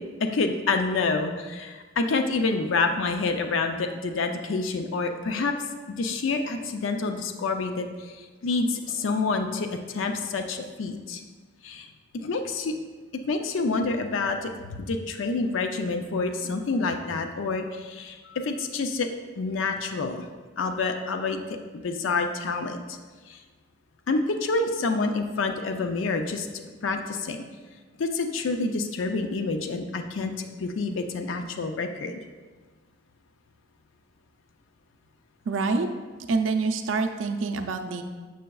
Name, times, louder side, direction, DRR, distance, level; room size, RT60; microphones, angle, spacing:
voice 1, 0.2-5.5 6.0-8.2 8.4-11.2 11.6-11.9 12.2-12.8 13.2-19.1 19.4-20.2 20.6-21.4 21.7-23.0 23.3-23.4 24.1-27.4 28.0-32.2, left 3 dB, 80° left, 6 dB, 0.4 m, -28 dB
voice 2, 35.5-35.9 36.3-38.0, right 4 dB, 80° right, 5 dB, 0.5 m, -26 dB
6.6 x 6.3 x 2.3 m, 1.4 s
head